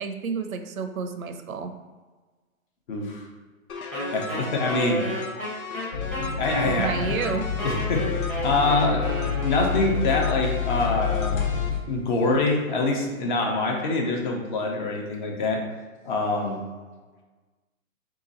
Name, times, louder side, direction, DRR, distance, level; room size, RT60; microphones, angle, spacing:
voice 1, 0.0-1.7 6.6-7.5, right 5 dB, 75° right, 8 dB, 0.7 m, -30 dB
voice 2, 2.9-3.2 4.1-5.0 5.7-5.8 6.4-7.2 7.6-11.4 11.9-15.6 16.0-16.6, left 2 dB, 35° left, 1 dB, 0.8 m, -25 dB
sound 1, 3.7-11.7, left 4 dB, 85° left, 0.7 m, -36 dB
Wind instrument woodwind instrument, 3.9-10.0, right 1 dB, 5° left, 0.7 m, -33 dB
sound 2, 5.9-11.8, left 7 dB, 65° left, 1.2 m, -28 dB
3.7 x 2.9 x 4.0 m, 1.3 s
hypercardioid pair, 140°, 41 cm